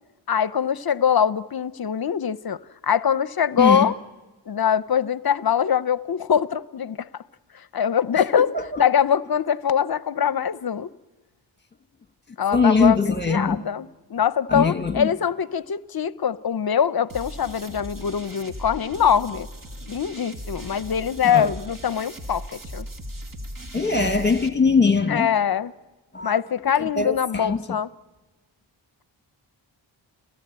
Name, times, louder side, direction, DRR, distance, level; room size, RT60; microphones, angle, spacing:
voice 1, 0.3-3.9 4.5-7.1 7.5-10.9 12.4-19.5 19.9-22.9 25.1-25.7 26.2-27.9, left 8 dB, 50° left, 0.7 m, -23 dB
voice 2, 3.6-3.9 8.3-8.8 12.5-13.6 14.5-15.1 21.2-21.5 23.7-25.3 26.1-26.4 27.0-27.8, left 4 dB, 20° left, 1.7 m, -21 dB
sound 1, 17.1-24.5, equal, 45° right, 2.3 m, -38 dB
29.5 x 16.5 x 8.9 m
cardioid pair, 60°, 47 cm